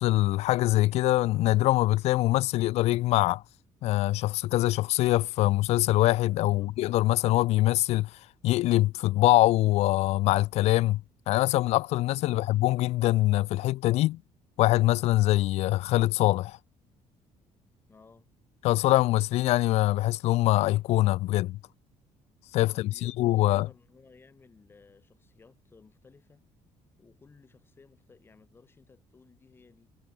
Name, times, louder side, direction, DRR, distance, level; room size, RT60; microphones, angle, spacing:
voice 1, 0.0-3.4 3.8-11.0 11.3-14.2 14.6-16.6 18.6-21.6 22.5-23.7, left 17 dB, 70° left, 0.6 m, -24 dB
voice 2, 6.3-6.7 12.3-12.7 17.9-18.3 22.6-26.4 27.0-29.9, left 4 dB, 20° left, 6.5 m, -57 dB
cardioid pair, 165°, 11 cm